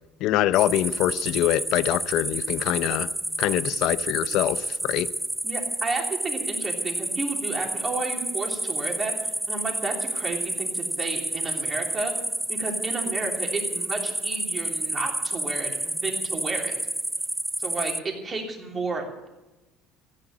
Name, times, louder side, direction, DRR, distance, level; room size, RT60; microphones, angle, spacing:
voice 1, 0.2-3.1 3.4-5.1, left 13 dB, 60° left, 0.6 m, -24 dB
sound 1, 0.5-18.0, right 1 dB, 5° right, 0.5 m, -30 dB
voice 2, 5.4-9.1 9.5-12.1 12.5-16.7 17.6-19.3, right 3 dB, 20° right, 3.1 m, -32 dB
15.0 x 10.0 x 8.7 m
cardioid pair, 155°, 0 cm